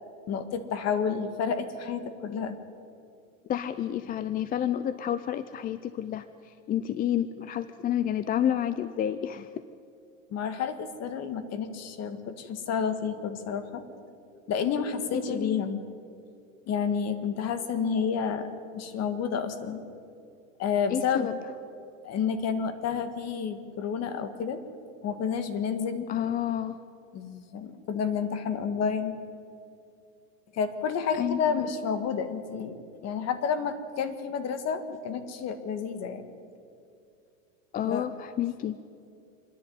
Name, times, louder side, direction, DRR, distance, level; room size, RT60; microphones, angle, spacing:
voice 1, 0.3-2.6 10.3-13.8 14.5-15.8 16.7-18.5 18.7-19.8 20.6-21.3 22.0-24.6 25.0-26.1 27.1-29.2 30.5-32.8 33.0-36.3 37.8-38.1, left 6 dB, 40° left, 10 dB, 1.9 m, -30 dB
voice 2, 3.5-9.5 15.1-15.6 20.9-21.4 26.1-26.8 31.2-31.6 37.7-38.8, left 10 dB, 20° left, 13 dB, 0.5 m, -30 dB
26.5 x 11.0 x 9.5 m, 2.5 s
supercardioid pair, 120°, 40 cm